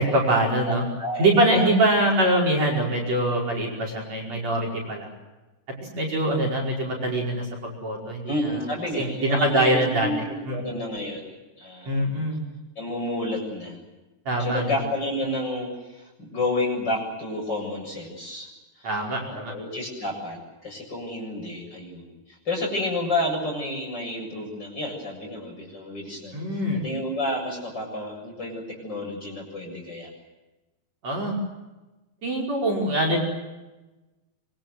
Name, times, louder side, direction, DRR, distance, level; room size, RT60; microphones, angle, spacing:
voice 1, 0.0-0.8 1.2-5.1 5.9-8.5 9.0-10.1 10.5-10.7 11.9-12.4 14.3-14.7 18.8-19.5 26.3-26.8 31.0-31.4 32.2-33.2, right 1 dB, 40° right, -1 dB, 6.3 m, -23 dB
voice 2, 0.7-1.7 8.3-12.1 12.8-13.8 14.4-18.5 18.8-18.9 19.3-30.1, left 1 dB, 25° left, 1 dB, 7.8 m, -30 dB
26.0 x 24.5 x 7.8 m, 1.1 s
omnidirectional pair, 4.7 m